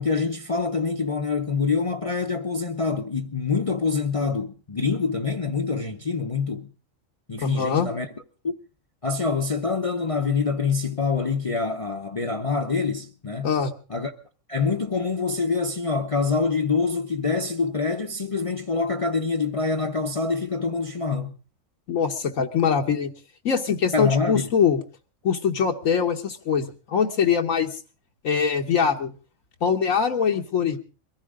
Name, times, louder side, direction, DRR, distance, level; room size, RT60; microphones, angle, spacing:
voice 1, 0.0-6.7 7.3-8.1 8.4-8.5 9.0-13.5 13.9-14.1 14.5-21.3 23.9-24.5, left 4 dB, 30° left, 0.7 m, -25 dB
voice 2, 7.4-7.9 13.4-13.7 21.9-23.1 23.4-24.8 25.2-27.7 28.2-29.1 29.6-30.8, left 6 dB, 80° left, 1.5 m, -23 dB
22.5 x 14.5 x 3.7 m
omnidirectional pair, 1.4 m